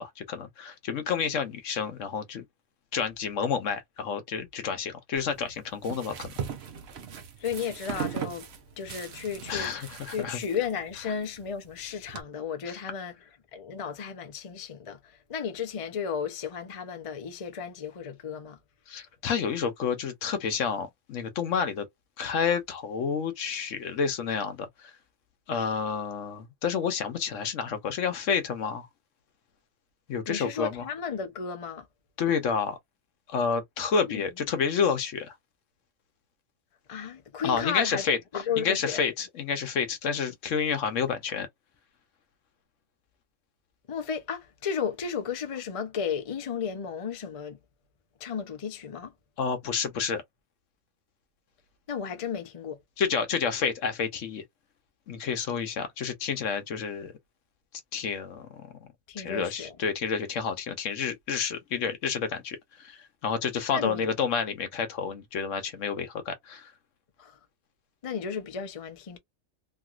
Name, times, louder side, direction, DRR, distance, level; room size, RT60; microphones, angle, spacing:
voice 1, 0.0-2.4 2.9-6.3 9.5-10.4 12.7-12.8 18.9-21.9 22.2-24.9 25.5-28.9 30.1-30.8 32.2-32.8 33.3-35.3 37.4-38.2 38.6-41.5 49.4-50.2 53.0-54.4 55.1-57.1 57.9-58.6 59.2-66.7, left 6 dB, 70° left, 1.1 m, -29 dB
sound 1, 5.1-12.2, right 7 dB, 55° right, 0.9 m, -39 dB
voice 2, 7.4-8.5 8.8-13.1 13.5-15.0 15.3-18.6 30.3-31.8 33.9-34.2 36.9-38.0 38.3-39.0 43.9-47.6 48.2-49.1 51.9-52.8 59.1-59.7 63.7-64.1 67.2-67.3 68.0-69.2, left 7 dB, 45° left, 0.4 m, -34 dB
3.0 x 2.9 x 2.4 m
omnidirectional pair, 1.4 m